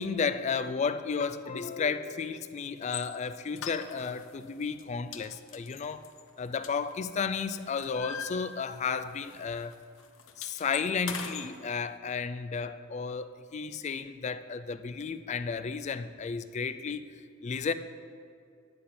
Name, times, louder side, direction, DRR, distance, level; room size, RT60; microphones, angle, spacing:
voice 1, 0.0-6.1 6.4-9.7 10.4-17.1 17.4-17.7, left 5 dB, 35° left, 0.3 m, -33 dB
sound 1, 2.8-3.1 3.6-4.3 4.6-4.8 5.1-7.2 7.5-9.0 9.2-9.4 9.7-11.5, left 7 dB, 65° left, 0.7 m, -41 dB
9.6 x 9.4 x 4.3 m
head